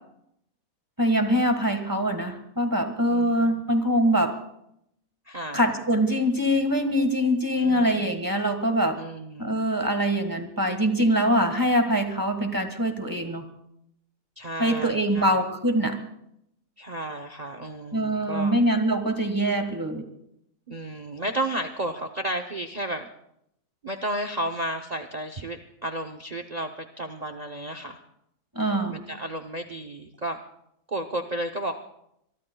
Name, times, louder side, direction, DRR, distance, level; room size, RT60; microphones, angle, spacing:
voice 1, 1.0-4.3 5.5-9.0 9.4-13.4 14.6-16.0 17.9-20.0 28.5-29.0, equal, 15° right, 5 dB, 1.5 m, -23 dB
voice 2, 3.1-3.5 5.3-5.6 7.6-8.2 9.0-9.6 14.4-15.4 16.8-18.6 20.7-23.1 23.8-26.7 27.0-28.0 28.9-30.4 30.9-31.8, right 1 dB, 40° right, 6 dB, 0.7 m, -32 dB
24.5 x 23.0 x 2.3 m, 0.76 s
omnidirectional pair, 1.5 m